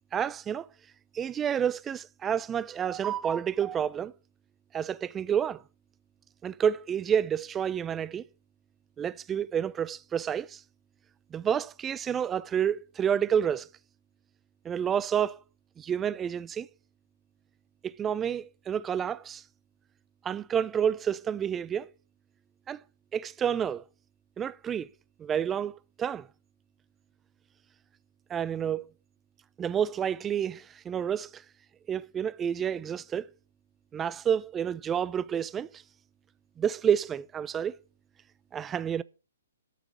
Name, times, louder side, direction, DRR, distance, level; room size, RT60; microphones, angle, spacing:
voice 1, 0.1-0.7 1.1-4.1 4.7-5.6 6.4-8.2 9.0-10.6 11.3-13.7 14.6-15.4 15.8-16.7 17.8-19.4 20.2-21.9 22.7-22.8 23.1-23.8 24.4-24.9 25.2-26.3 28.3-28.8 29.6-31.4 31.9-33.3 33.9-35.7 36.6-37.8 38.5-39.0, right 8 dB, 15° right, 0.6 m, -29 dB
13.5 x 5.9 x 8.3 m
figure-of-eight pair, 130°, 0 cm